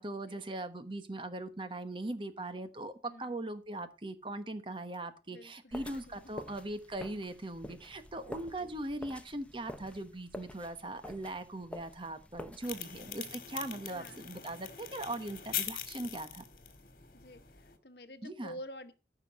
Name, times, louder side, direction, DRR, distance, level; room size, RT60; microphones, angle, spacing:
voice 1, 0.0-16.4 18.2-18.6, right 2 dB, 30° right, 10 dB, 1.1 m, -40 dB
voice 2, 3.1-3.4 5.3-6.3 8.2-8.7 13.9-14.2 17.1-18.9, equal, 70° left, 10 dB, 1.1 m, -50 dB
sound 1, 5.7-13.1, left 1 dB, 5° left, 0.7 m, -49 dB
sound 2, 12.6-17.8, left 10 dB, 50° left, 1.9 m, -42 dB
14.0 x 6.0 x 5.3 m, 0.31 s
head